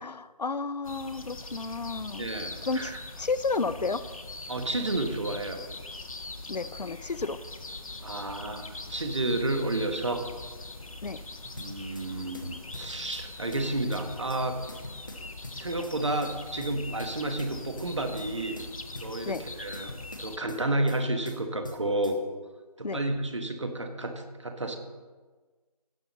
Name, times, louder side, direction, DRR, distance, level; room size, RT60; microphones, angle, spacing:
voice 1, 0.0-2.3 2.7-4.1 6.5-7.4 11.0-11.2 19.3-19.5 22.8-23.0, left 4 dB, 80° left, 14 dB, 0.6 m, -32 dB
sound 1, 0.8-20.4, left 2 dB, 55° left, 0.9 m, -42 dB
voice 2, 2.2-2.9 4.5-5.6 8.0-10.3 11.5-14.6 15.5-18.6 19.0-22.2 22.8-24.8, right 2 dB, 45° right, 6 dB, 1.2 m, -31 dB
sound 2, 11.6-12.1 12.3-13.2 13.5-14.4 14.7-16.0 16.2-17.1 17.4-18.3 18.6-19.5 19.7-21.0 21.3-22.2, left 1 dB, 30° left, 0.9 m, -45 dB
17.0 x 5.8 x 4.1 m, 1.4 s
figure-of-eight pair, 175°, 21 cm